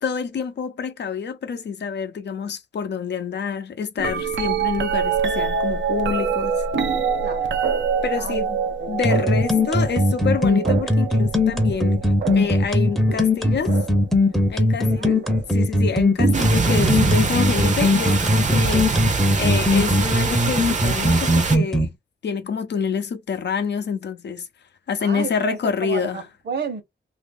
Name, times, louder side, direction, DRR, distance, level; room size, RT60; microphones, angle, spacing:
voice 1, 0.0-6.6 8.0-8.6 8.9-13.8 14.5-15.2 15.5-22.0 22.2-24.5 24.9-26.2, left 6 dB, 70° left, 0.6 m, -27 dB
sound 1, 4.0-14.1 15.0-15.4 16.2-17.2 19.0-19.1, right 6 dB, 85° right, 0.7 m, -26 dB
voice 2, 7.2-7.6 8.2-8.4 8.8-9.3 14.8-15.2 25.0-26.8, right 5 dB, 65° right, 1.1 m, -32 dB
sound 2, 9.0-21.9, left 1 dB, ahead, 0.7 m, -19 dB
sound 3, 16.3-21.6, right 4 dB, 40° right, 0.7 m, -23 dB
2.9 x 2.7 x 3.5 m
wide cardioid pair, 150°, 19 cm